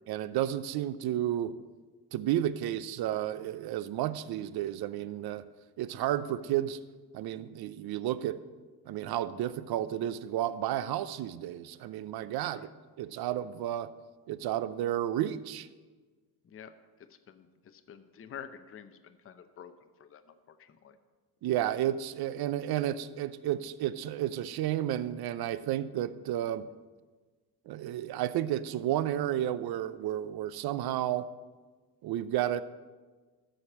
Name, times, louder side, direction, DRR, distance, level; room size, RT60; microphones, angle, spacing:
voice 1, 0.1-1.5 2.1-5.4 5.8-6.8 7.1-8.4 8.9-12.7 13.0-13.9 14.3-15.7 21.4-26.7 27.7-31.3 32.0-32.6, right 12 dB, 65° right, 15 dB, 0.6 m, -32 dB
voice 2, 16.4-19.7 20.0-21.0, left 8 dB, 35° left, 9 dB, 0.7 m, -49 dB
12.5 x 5.1 x 7.3 m, 1.4 s
cardioid pair, 95°, 41 cm